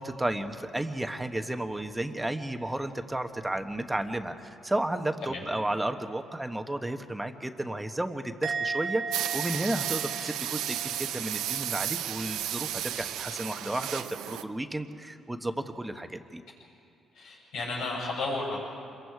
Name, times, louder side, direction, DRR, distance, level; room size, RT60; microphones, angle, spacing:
voice 1, 0.0-16.4, right 1 dB, 10° right, 7 dB, 1.2 m, -33 dB
Musical instrument, 8.4-11.8 12.1-12.5, right 5 dB, 60° right, 1.5 m, -37 dB
sound 1, 9.1-14.4, right 11 dB, 90° right, 0.6 m, -33 dB
voice 2, 17.1-18.6, left 3 dB, 85° left, -4 dB, 7.8 m, -33 dB
28.0 x 22.5 x 4.8 m, 2.5 s
cardioid pair, 90°, 0 cm